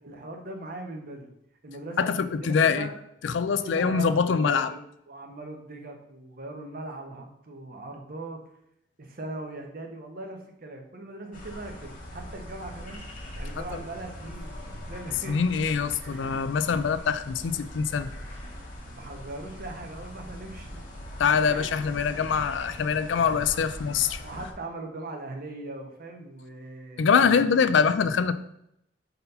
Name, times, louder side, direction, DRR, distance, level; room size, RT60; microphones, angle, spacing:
voice 1, 0.0-1.3 1.6-2.9 3.6-4.1 4.4-4.8 5.1-8.4 9.0-13.0 13.3-15.5 16.0-16.8 18.8-20.8 21.5-21.9 24.2-27.1, right 2 dB, 50° right, 3 dB, 1.0 m, -40 dB
voice 2, 2.0-2.9 3.2-4.7 15.3-18.1 21.2-24.2 27.0-28.3, left 6 dB, 80° left, 12 dB, 0.4 m, -24 dB
sound 1, 11.3-24.5, left 1 dB, 50° left, 1.2 m, -41 dB
4.2 x 4.0 x 5.4 m, 0.78 s
head